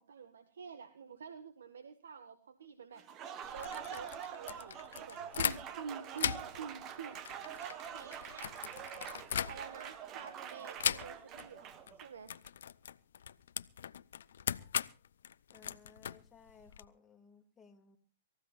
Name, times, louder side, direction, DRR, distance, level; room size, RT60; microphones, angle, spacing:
voice 1, 0.0-3.0 3.5-8.5 9.4-11.7 12.0-12.3, right 6 dB, 85° right, 9 dB, 1.7 m, -48 dB
Applause, 2.9-12.3, right 9 dB, 30° right, 1.2 m, -45 dB
sound 1, 3.4-5.9 6.1-10.0 10.8-11.5 11.7-11.9 12.2-16.8, left 9 dB, 75° left, 0.6 m, -39 dB
voice 2, 15.5-18.0, left 5 dB, 15° left, 3 dB, 2.4 m, -60 dB
24.5 x 15.0 x 2.5 m, 0.35 s
hypercardioid pair, 130°, 0 cm